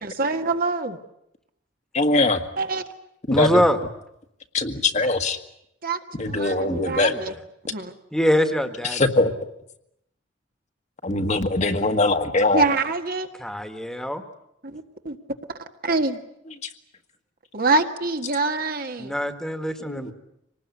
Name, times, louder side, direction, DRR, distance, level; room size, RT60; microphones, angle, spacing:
voice 1, 0.0-1.0 2.6-2.8 5.8-7.3 7.7-7.9 12.5-13.3 14.6-15.2 15.8-16.2 17.5-19.1, right 3 dB, 50° right, 6 dB, 1.7 m, -25 dB
voice 2, 1.9-2.4 3.3-3.5 4.5-5.4 6.2-7.1 8.9-9.3 11.0-12.6 19.9-20.1, left 2 dB, 40° left, 6 dB, 1.7 m, -21 dB
voice 3, 3.3-3.8 6.9-7.4 8.1-9.1 13.4-14.2 19.0-20.1, equal, 5° left, 8 dB, 1.7 m, -24 dB
25.5 x 19.5 x 9.7 m, 0.80 s
head